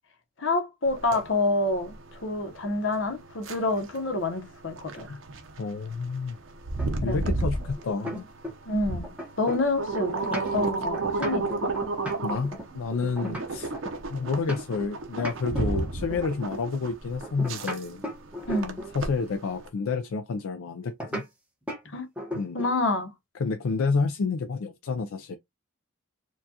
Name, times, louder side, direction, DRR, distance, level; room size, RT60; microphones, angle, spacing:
voice 1, 0.4-5.1 7.0-7.2 8.7-11.7 13.2-13.4 18.5-18.8 21.9-22.1 22.5-23.1, left 2 dB, 60° left, 0.9 m, -28 dB
sound 1, 0.9-19.7, right 3 dB, 70° right, 0.8 m, -33 dB
voice 2, 5.6-6.4 7.0-8.2 12.2-13.7 14.1-18.0 18.9-21.2 22.3-22.6 23.4-25.4, left 4 dB, 75° left, 0.4 m, -29 dB
sound 2, 6.8-8.8 9.0-14.9 15.2-16.3 17.2-19.0 21.0-21.3 21.7-21.9 22.2-22.8, equal, 5° right, 1.0 m, -37 dB
4.5 x 2.4 x 2.7 m
head